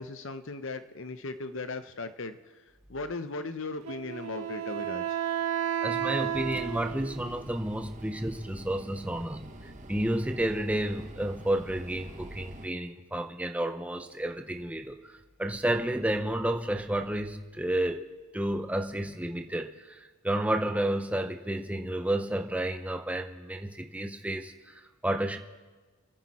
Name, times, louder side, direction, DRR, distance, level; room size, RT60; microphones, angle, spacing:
voice 1, 0.0-2.4 2.9-5.2, left 3 dB, 55° left, 11 dB, 0.8 m, -37 dB
Wind instrument woodwind instrument, 3.8-7.4, right 9 dB, 85° right, 1.3 m, -32 dB
voice 2, 5.8-9.5 9.9-18.0 18.3-25.4, right 1 dB, 5° right, 4 dB, 0.6 m, -31 dB
sound 1, 6.3-12.7, right 1 dB, 35° right, 1.1 m, -46 dB
27.0 x 10.5 x 4.3 m, 1.3 s
head